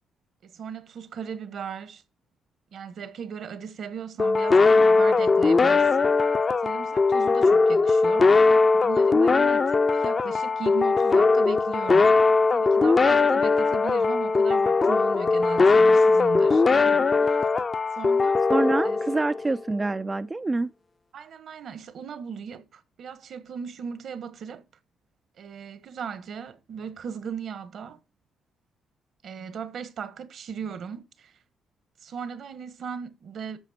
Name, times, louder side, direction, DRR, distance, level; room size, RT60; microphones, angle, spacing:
voice 1, 0.4-2.0 2.7-6.1 6.6-8.3 8.7-12.1 12.5-17.5 17.9-18.4 18.8-19.0 21.1-24.6 25.4-28.0 29.2-31.3 32.0-33.6, right 7 dB, 65° right, 1.4 m, -37 dB
sound 1, 4.2-19.6, left 4 dB, 35° left, 0.7 m, -20 dB
voice 2, 18.5-20.7, right 2 dB, 20° right, 0.4 m, -26 dB
13.5 x 5.2 x 5.0 m
cardioid pair, 90°, 0 cm